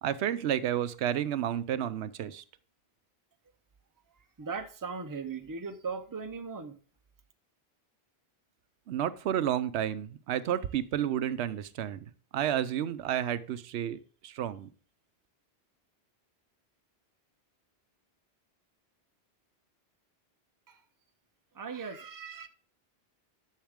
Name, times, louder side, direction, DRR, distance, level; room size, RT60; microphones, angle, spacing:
voice 1, 0.0-2.4 8.9-14.0 14.2-14.7, right 10 dB, 85° right, 0.9 m, -31 dB
voice 2, 4.4-6.8 20.7-20.8 21.5-22.5, right 5 dB, 20° right, 0.6 m, -38 dB
10.5 x 6.5 x 3.6 m
omnidirectional pair, 1.1 m